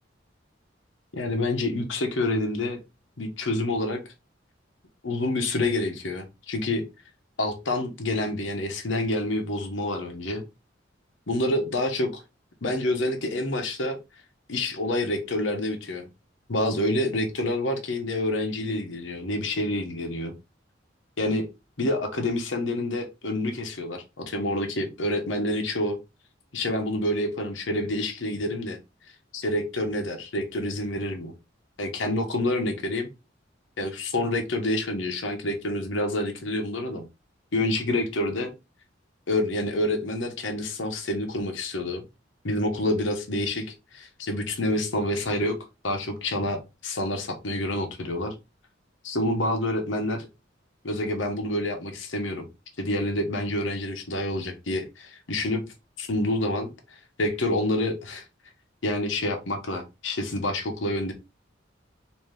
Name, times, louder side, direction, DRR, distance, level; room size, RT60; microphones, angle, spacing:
voice 1, 1.1-2.8 3.2-4.0 5.0-6.9 7.4-10.4 11.3-12.2 12.6-14.0 14.5-16.1 16.5-20.3 21.2-21.5 21.8-26.0 26.5-28.8 29.3-31.3 31.8-33.1 33.8-37.0 37.5-38.5 39.3-42.0 42.4-45.6 45.8-48.3 49.0-50.3 50.8-52.4 52.8-56.7 57.2-58.2 58.8-61.1, left 1 dB, 80° left, 1.0 m, -28 dB
4.1 x 2.8 x 3.3 m
head